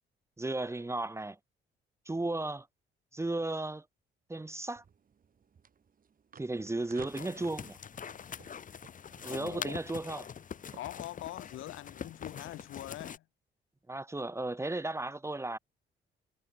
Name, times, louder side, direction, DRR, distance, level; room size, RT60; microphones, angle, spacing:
voice 1, 0.4-1.4 2.1-2.7 3.1-3.8 4.3-4.8 6.4-7.8 9.2-10.3 13.9-15.6, right 2 dB, 15° right, 1.1 m, -35 dB
sound 1, 4.8-12.7, right 6 dB, 45° right, 4.1 m, -57 dB
sound 2, 7.1-13.2, left 7 dB, 40° left, 1.0 m, -44 dB
voice 2, 9.2-9.8 10.7-13.2, left 15 dB, 85° left, 2.3 m, -43 dB
cardioid pair, 90°, 20 cm